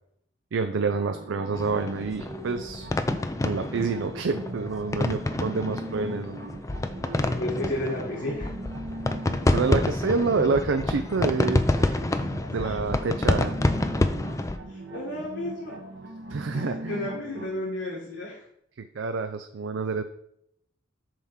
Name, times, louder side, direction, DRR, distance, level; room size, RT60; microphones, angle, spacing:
voice 1, 0.5-2.9 3.4-6.4 9.5-13.6 16.3-17.0 18.8-20.0, right 4 dB, 75° right, 8 dB, 0.5 m, -28 dB
sound 1, 0.7-17.5, right 2 dB, 60° right, 1.0 m, -40 dB
sound 2, 1.5-14.6, left 2 dB, 15° left, 0.4 m, -28 dB
voice 2, 7.2-8.5 12.6-12.8 14.7-15.8 16.5-18.4, left 1 dB, 65° left, -4 dB, 1.7 m, -33 dB
7.4 x 3.6 x 5.8 m, 0.71 s
head